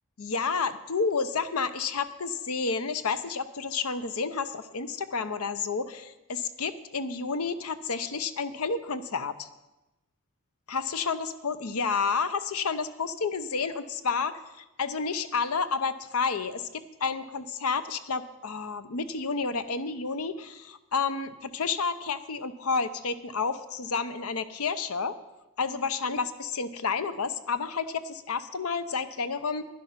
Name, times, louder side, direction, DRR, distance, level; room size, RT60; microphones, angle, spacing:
voice 1, 0.2-9.5 10.7-25.1 25.6-29.7, left 5 dB, 85° left, 12 dB, 0.7 m, -30 dB
11.5 x 10.5 x 5.8 m, 1.0 s
head